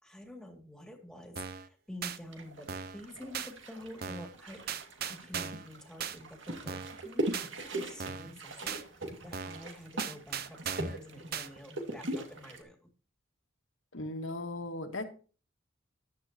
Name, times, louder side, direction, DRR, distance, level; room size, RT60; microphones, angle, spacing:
voice 1, 0.0-4.6 5.1-7.3 7.7-8.8 9.2-12.8, equal, 5° left, 3 dB, 2.4 m, -48 dB
sound 1, 1.4-1.7 2.0-2.2 2.7-3.0 3.3-3.5 4.0-4.3 4.7-5.7 6.0-6.2 6.7-7.0 7.3-7.5 8.0-8.3 8.7-8.8 9.3-9.6 10.0-11.0 11.3-11.5, right 7 dB, 50° right, 0.8 m, -38 dB
sound 2, 2.3-12.6, right 1 dB, 70° right, 2.2 m, -40 dB
voice 2, 13.9-15.0, left 2 dB, 80° left, 5 dB, 2.1 m, -37 dB
14.0 x 11.0 x 2.9 m, 0.37 s
head